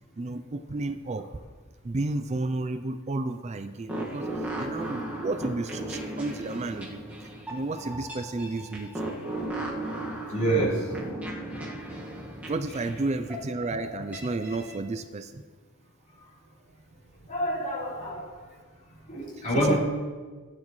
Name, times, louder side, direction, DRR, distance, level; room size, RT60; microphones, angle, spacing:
voice 1, 0.2-1.3 1.8-4.3 4.6-7.0 7.5-8.9 12.5-15.4 19.5-19.8, right 2 dB, 30° right, 10 dB, 0.4 m, -32 dB
sound 1, 3.9-14.8, right 1 dB, 5° right, 1.7 m, -36 dB
voice 2, 10.3-10.9 17.3-18.6 19.1-19.8, right 1 dB, 35° left, -6 dB, 3.6 m, -27 dB
16.0 x 9.6 x 3.2 m, 1.4 s
head